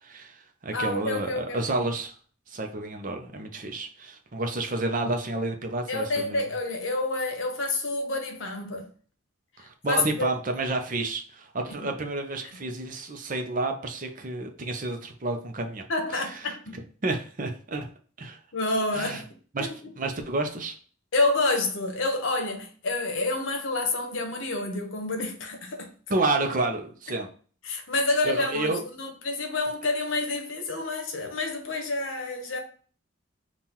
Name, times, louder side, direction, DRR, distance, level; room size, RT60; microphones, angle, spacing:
voice 1, 0.0-2.1 2.5-6.4 9.6-16.5 17.0-17.9 18.2-18.4 18.9-19.2 19.5-19.7 20.0-20.8 26.1-27.3 28.2-28.8, right 2 dB, 40° right, 0.7 m, -30 dB
voice 2, 0.7-1.9 5.9-8.9 9.9-10.3 11.8-11.9 15.9-16.8 18.5-19.3 19.6-19.7 21.1-25.9 27.6-32.6, left 2 dB, 75° left, 1.0 m, -28 dB
5.5 x 2.5 x 2.9 m
head